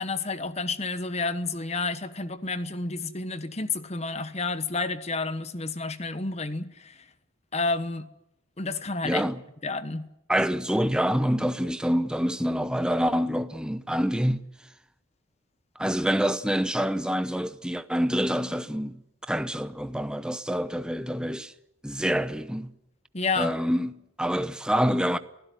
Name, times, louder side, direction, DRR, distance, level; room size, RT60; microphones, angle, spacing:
voice 1, 0.0-7.0 7.5-8.1 8.6-9.2 9.6-10.1 23.1-23.5, left 3 dB, 30° left, 1.2 m, -30 dB
voice 2, 9.0-9.4 10.3-14.7 15.8-21.5 21.8-22.7 23.4-25.2, equal, 5° right, 0.8 m, -27 dB
23.0 x 16.0 x 9.6 m
head